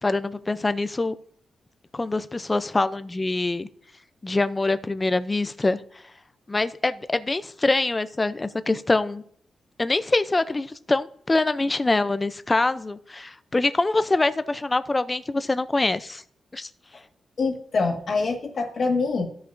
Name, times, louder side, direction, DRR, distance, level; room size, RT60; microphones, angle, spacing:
voice 1, 0.0-1.1 1.9-3.7 4.2-6.0 6.5-9.2 9.8-16.2 16.5-16.7, left 2 dB, 20° left, 13 dB, 0.5 m, -24 dB
voice 2, 17.4-19.2, left 4 dB, 50° left, 1 dB, 1.7 m, -25 dB
15.0 x 5.5 x 2.6 m, 0.65 s
cardioid pair, 100°, 0 cm